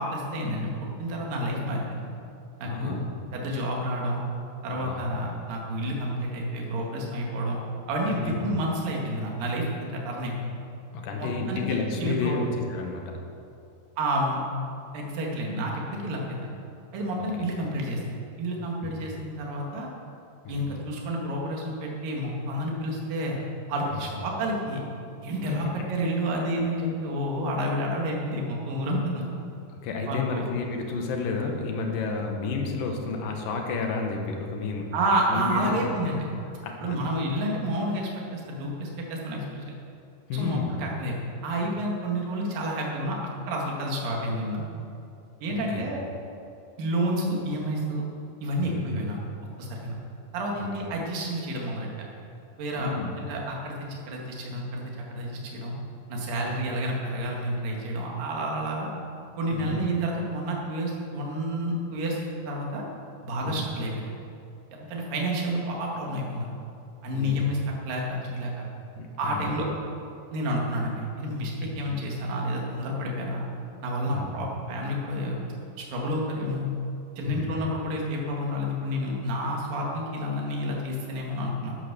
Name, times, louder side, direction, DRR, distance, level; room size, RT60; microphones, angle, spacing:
voice 1, 0.0-2.0 2.6-3.0 3.3-4.2 4.6-7.6 7.9-10.5 11.2-12.4 14.0-14.4 14.9-16.5 16.9-18.0 18.4-19.9 20.5-23.4 23.7-24.8 25.2-29.2 30.1-30.4 34.9-36.3 36.8-39.7 40.3-41.2 41.4-43.2 43.5-44.6 45.4-46.0 46.8-48.0 48.4-49.2 49.6-49.9 50.3-51.9 52.6-52.9 53.2-54.8 55.1-55.8 56.1-58.9 59.4-62.2 62.5-62.8 63.2-64.1 64.7-66.5 67.0-67.6 67.9-68.7 69.2-69.7 70.3-73.5 73.8-75.4 75.8-76.7 77.2-81.8, equal, 60° right, -2 dB, 3.5 m, -29 dB
voice 2, 2.6-3.1 4.7-5.0 8.1-8.4 10.9-13.1 18.8-18.9 20.4-20.7 23.9-24.0 25.5-25.6 29.7-34.9 35.3-35.9 36.6-37.0 40.3-40.8 45.5-45.9 48.6-48.9 50.6-50.7 52.8-53.1 56.4-56.5 59.5-59.8 63.4-63.6 67.1-67.5 69.0-69.5 71.6-71.8 74.1-74.3 77.3-77.5, left 4 dB, 65° left, 2 dB, 2.8 m, -31 dB
12.0 x 10.5 x 6.9 m, 2.7 s
omnidirectional pair, 4.8 m